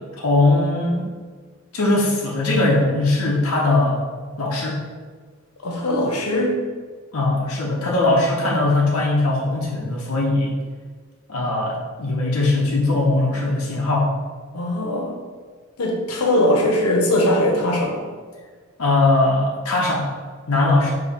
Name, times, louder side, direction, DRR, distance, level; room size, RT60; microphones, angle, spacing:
voice 1, 0.2-1.1 1.7-4.0 4.4-4.8 7.1-10.5 11.3-14.1 18.8-20.1 20.5-20.9, left 2 dB, 65° left, -4 dB, 0.7 m, -20 dB
voice 2, 5.6-6.6 14.5-15.1 15.8-18.0, left 1 dB, 85° left, -1 dB, 0.9 m, -20 dB
4.4 x 2.8 x 4.0 m, 1.6 s
head